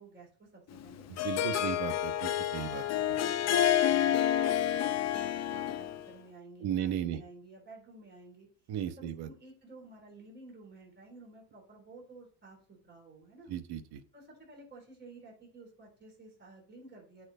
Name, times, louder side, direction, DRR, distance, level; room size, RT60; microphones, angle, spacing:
voice 1, 0.0-1.1 1.4-1.9 2.9-13.5 14.1-17.3, right 3 dB, 20° right, -2 dB, 3.9 m, -53 dB
Harp, 0.8-6.1, left 11 dB, 35° left, 0.6 m, -29 dB
voice 2, 1.1-2.8 6.6-7.2 8.7-9.3 13.5-14.0, right 10 dB, 55° right, 11 dB, 1.1 m, -35 dB
8.5 x 4.7 x 5.4 m, 0.43 s
cardioid pair, 120°, 46 cm